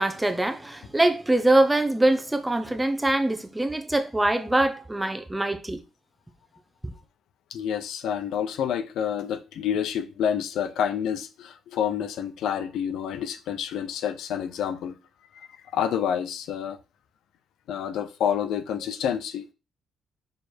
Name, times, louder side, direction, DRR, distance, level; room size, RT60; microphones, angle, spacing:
voice 1, 0.0-5.8, right 1 dB, 10° right, 0.9 m, -23 dB
voice 2, 7.5-15.0 15.3-16.8 17.7-19.5, left 8 dB, 80° left, 0.7 m, -28 dB
4.9 x 4.6 x 4.5 m
cardioid pair, 90°, 0 cm